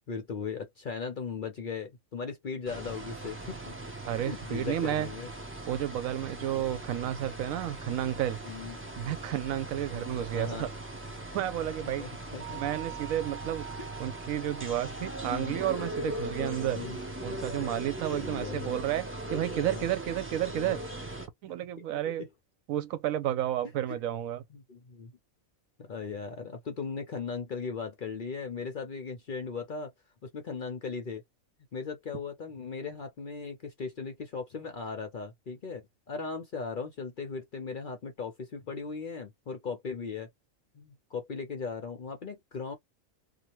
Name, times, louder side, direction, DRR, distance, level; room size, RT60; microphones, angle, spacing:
voice 1, 0.1-3.8 4.2-5.3 8.4-8.8 9.8-10.0 10.3-10.7 12.0-12.6 13.8-13.9 15.0-15.1 15.4-15.6 16.6-17.0 17.6-17.7 18.1-18.7 19.5-19.9 20.6-20.8 21.9-22.0 24.5-25.1 25.8-29.9 30.2-31.2 31.7-40.3 40.7-42.7, left 5 dB, 50° left, 0.6 m, -38 dB
sound 1, 2.7-21.3, right 1 dB, 15° right, 0.4 m, -39 dB
voice 2, 4.1-5.1 5.7-8.4 9.0-10.7 11.3-12.1 12.5-13.7 14.0-16.8 17.2-20.8 21.4-22.2 22.7-24.4, right 12 dB, 80° right, 1.0 m, -31 dB
2.7 x 2.3 x 3.0 m
omnidirectional pair, 1.4 m